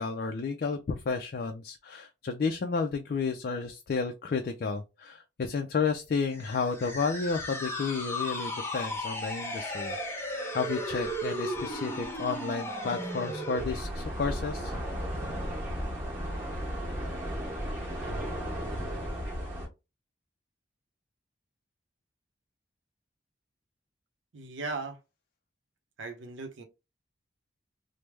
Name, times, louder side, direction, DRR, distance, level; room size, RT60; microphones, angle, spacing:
voice 1, 0.0-10.0 10.2-14.7, left 4 dB, 50° left, 0.3 m, -32 dB
sound 1, 6.3-13.7, equal, 15° left, 0.7 m, -35 dB
sound 2, 13.6-19.7, equal, 10° right, 1.1 m, -34 dB
voice 2, 24.3-25.0 26.0-26.7, right 3 dB, 85° right, 0.6 m, -37 dB
3.2 x 2.0 x 3.2 m
head